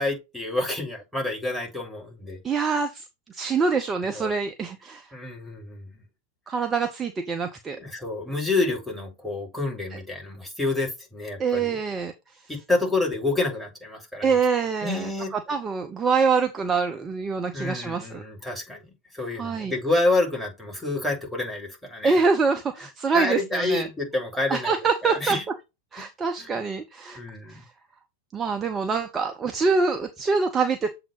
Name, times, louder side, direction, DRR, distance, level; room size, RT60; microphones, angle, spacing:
voice 1, 0.0-2.4 4.1-4.3 5.1-6.0 7.7-11.8 12.5-14.4 14.8-15.3 17.5-18.8 19.1-22.2 23.1-24.7 25.0-25.4 26.4-26.6 27.1-27.6, left 2 dB, ahead, 2.8 m, -28 dB
voice 2, 2.4-5.1 6.5-7.8 9.9-10.0 11.4-12.4 14.2-18.2 19.4-19.7 22.0-23.9 24.5-25.4 25.9-27.2 27.5-27.7 28.3-30.9, right 5 dB, 20° right, 0.7 m, -25 dB
7.3 x 2.9 x 5.2 m
figure-of-eight pair, 90°, 0 cm